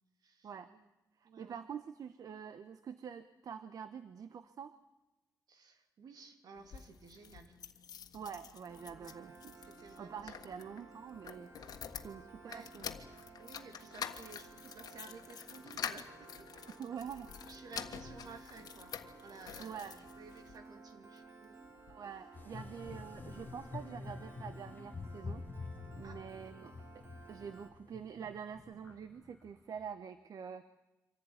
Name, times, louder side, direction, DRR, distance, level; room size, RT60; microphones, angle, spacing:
voice 1, 0.2-0.9 1.2-1.6 5.5-7.6 8.9-9.2 9.6-10.6 12.0-12.1 12.4-12.7 13.4-16.7 17.5-21.6 26.0-26.2 26.4-26.7, right 4 dB, 85° right, 6 dB, 2.9 m, -55 dB
voice 2, 1.2-4.8 8.1-9.5 10.0-11.5 12.0-12.9 16.8-17.3 19.6-19.9 21.9-25.4 25.9-26.7 27.3-30.6, right 7 dB, 65° right, 12 dB, 1.0 m, -46 dB
sound 1, 6.6-20.6 21.2-22.0 22.3-22.4 22.6-22.7, left 8 dB, 90° left, 1.5 m, -48 dB
Piano, 8.7-27.7, right 3 dB, 40° right, 2.8 m, -56 dB
sound 2, 22.3-29.8, left 4 dB, 30° left, 1.2 m, -47 dB
25.0 x 15.5 x 9.8 m, 1.0 s
wide cardioid pair, 150°, 7 cm